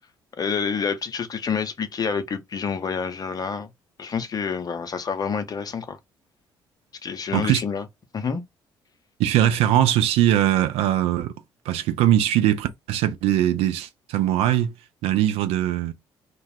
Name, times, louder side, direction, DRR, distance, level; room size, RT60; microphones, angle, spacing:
voice 1, 0.4-3.7 4.0-6.0 7.0-7.8 8.1-8.4, left 6 dB, 30° left, 0.6 m, -28 dB
voice 2, 9.2-11.3 11.7-14.7 15.0-15.9, right 12 dB, 55° right, 0.5 m, -21 dB
2.3 x 2.0 x 3.3 m
figure-of-eight pair, 45°, 12 cm